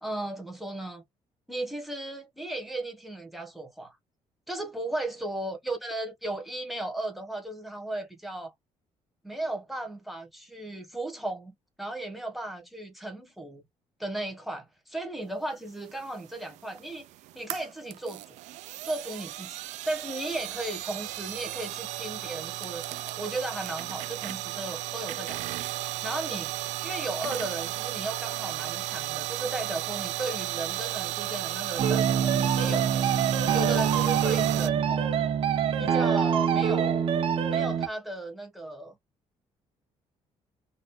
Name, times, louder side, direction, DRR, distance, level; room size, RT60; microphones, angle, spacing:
voice 1, 0.0-1.0 1.5-4.0 4.5-8.5 9.2-13.6 14.0-17.1 17.3-18.4 18.8-19.6 19.8-25.4 26.0-33.1 33.5-35.1 35.8-37.1 37.5-38.9, right 2 dB, ahead, 1.0 m, -35 dB
sound 1, 15.9-34.7, right 16 dB, 85° right, 0.4 m, -34 dB
sound 2, 31.8-37.9, right 8 dB, 50° right, 0.9 m, -25 dB
3.9 x 2.5 x 3.6 m
cardioid pair, 165°, 12 cm